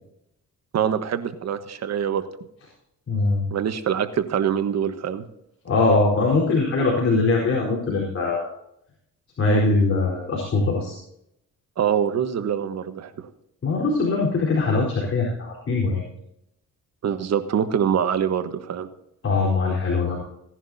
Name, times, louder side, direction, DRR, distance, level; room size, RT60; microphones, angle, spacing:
voice 1, 0.7-2.2 3.5-5.2 11.8-13.3 17.0-18.9, right 8 dB, 60° right, 9 dB, 1.3 m, -24 dB
voice 2, 3.1-3.5 5.6-8.5 9.4-11.0 13.6-16.0 19.2-20.2, left 3 dB, 45° left, -4 dB, 4.4 m, -21 dB
17.5 x 10.5 x 2.8 m, 0.78 s
cardioid pair, 90°, 30 cm